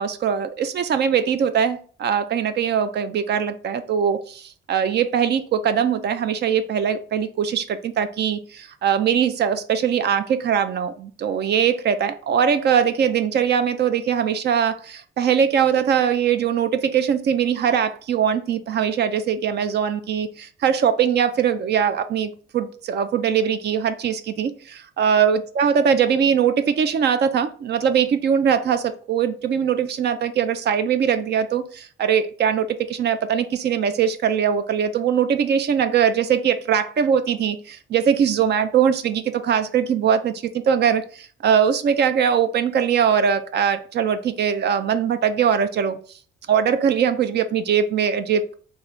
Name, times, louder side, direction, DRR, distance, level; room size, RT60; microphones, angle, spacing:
voice 1, 0.0-46.0 46.5-48.5, right 8 dB, 60° right, 10 dB, 0.4 m, -21 dB
3.0 x 2.6 x 4.0 m, 0.43 s
cardioid pair, 90°, 20 cm